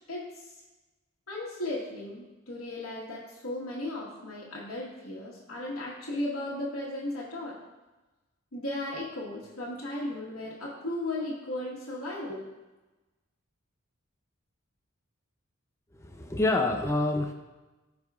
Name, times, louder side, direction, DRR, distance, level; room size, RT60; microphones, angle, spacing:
voice 1, 0.1-0.5 1.3-7.6 8.5-12.4, left 1 dB, 85° left, -6 dB, 1.4 m, -36 dB
voice 2, 15.9-17.3, left 2 dB, 15° left, 3 dB, 0.4 m, -27 dB
14.0 x 4.8 x 2.4 m, 1.1 s
head